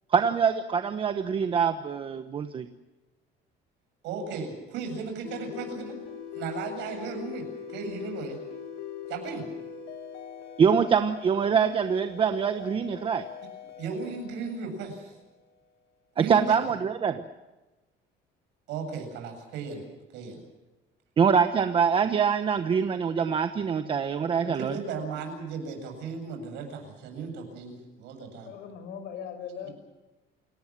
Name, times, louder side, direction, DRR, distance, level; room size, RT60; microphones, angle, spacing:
voice 1, 0.1-2.7 10.6-13.2 16.2-17.2 21.2-24.8, right 6 dB, 30° right, 8 dB, 1.0 m, -24 dB
voice 2, 4.0-5.9 6.3-8.4 9.1-9.5 13.8-15.1 16.2-16.6 18.7-19.8 20.1-20.4 24.4-28.5, right 5 dB, 90° right, 4 dB, 7.9 m, -36 dB
sound 1, 5.2-15.6, left 8 dB, 90° left, 5.0 m, -42 dB
voice 3, 28.4-29.7, left 8 dB, 65° left, 8 dB, 6.2 m, -39 dB
29.0 x 18.5 x 7.5 m, 1.1 s
cardioid pair, 165°, 18 cm